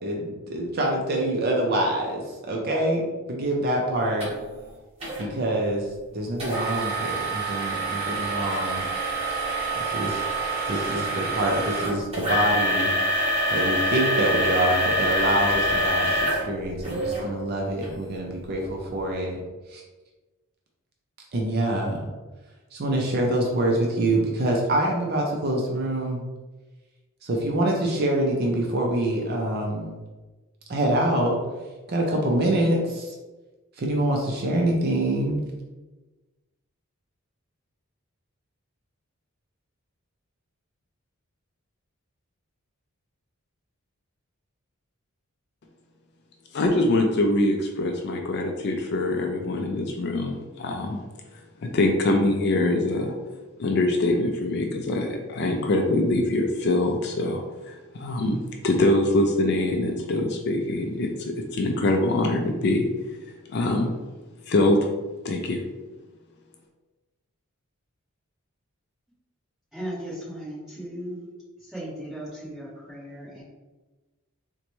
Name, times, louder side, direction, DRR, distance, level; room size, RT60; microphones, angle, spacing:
voice 1, 0.0-3.0 3.3-4.3 5.2-5.9 6.1-8.8 9.8-10.2 10.7-12.9 13.5-19.4 19.7-19.8 21.3-22.1 22.7-26.2 27.2-30.0 30.7-31.4 31.9-33.2 33.8-35.4, right 1 dB, 45° right, 0 dB, 0.5 m, -25 dB
sound 1, 4.2-4.3 5.0-5.2 6.4-17.2 17.8-17.9 18.5-18.6, right 1 dB, 25° right, 1.0 m, -26 dB
voice 2, 46.5-51.0 51.6-53.1 53.6-62.9 63.5-64.0 64.5-64.9 65.2-65.6, left 2 dB, 50° left, 2 dB, 0.3 m, -24 dB
voice 3, 69.7-71.3 71.6-73.4, right 1 dB, ahead, -10 dB, 1.3 m, -37 dB
3.9 x 2.2 x 3.0 m, 1.2 s
head